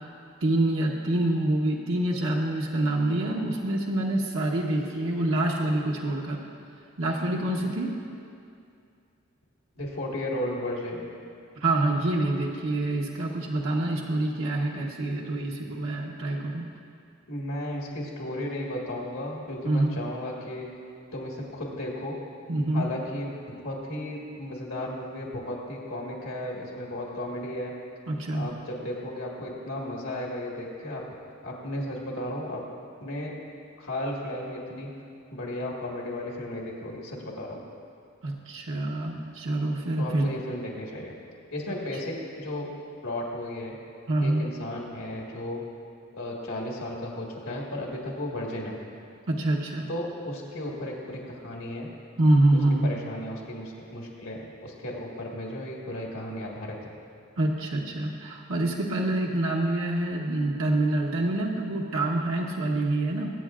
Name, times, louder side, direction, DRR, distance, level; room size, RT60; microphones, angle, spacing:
voice 1, 0.4-6.4 7.0-7.9 11.6-16.7 19.6-19.9 22.5-22.9 28.1-28.5 38.2-40.3 44.1-44.5 49.3-49.9 52.2-52.9 57.4-63.3, right 1 dB, 75° right, -2 dB, 1.0 m, -26 dB
voice 2, 9.8-11.1 17.3-20.7 21.1-22.2 22.7-27.7 28.3-31.0 31.4-32.6 33.0-33.3 33.8-34.9 35.3-37.6 40.0-41.1 41.5-42.7 43.0-43.7 44.2-45.6 46.1-48.8 49.9-51.9 52.8-57.0, left 1 dB, 75° left, -2 dB, 1.7 m, -34 dB
22.0 x 8.5 x 2.5 m, 2.5 s
head